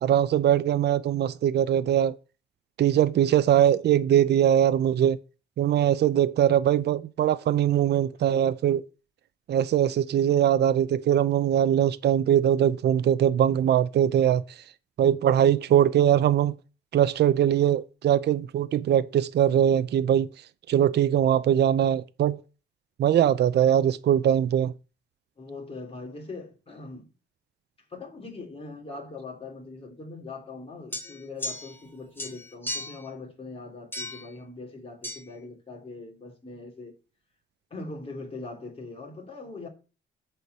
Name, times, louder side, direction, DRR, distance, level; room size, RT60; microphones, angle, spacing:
voice 1, 0.0-2.1 2.8-5.2 5.6-8.8 9.5-14.4 15.0-16.5 16.9-20.3 20.7-22.4 23.0-24.7, right 10 dB, 60° right, 0.6 m, -21 dB
voice 2, 25.4-27.1 27.9-36.9 37.7-39.7, left 3 dB, 30° left, 3.2 m, -41 dB
sound 1, 30.9-31.9 32.2-33.1 33.9-34.3 35.0-35.2, left 1 dB, 10° left, 2.8 m, -35 dB
8.0 x 4.6 x 6.7 m
cardioid pair, 90°, 20 cm